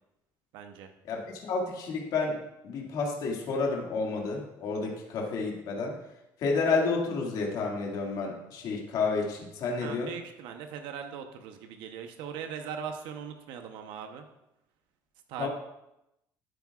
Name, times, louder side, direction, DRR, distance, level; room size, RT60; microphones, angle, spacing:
voice 1, 0.5-0.9 9.8-14.3 15.3-15.5, right 7 dB, 85° right, 5 dB, 0.9 m, -40 dB
voice 2, 1.0-6.0 6.4-10.1 15.4-15.5, left 4 dB, 55° left, -1 dB, 2.2 m, -30 dB
12.0 x 9.5 x 2.5 m, 0.87 s
cardioid pair, 150°, 8 cm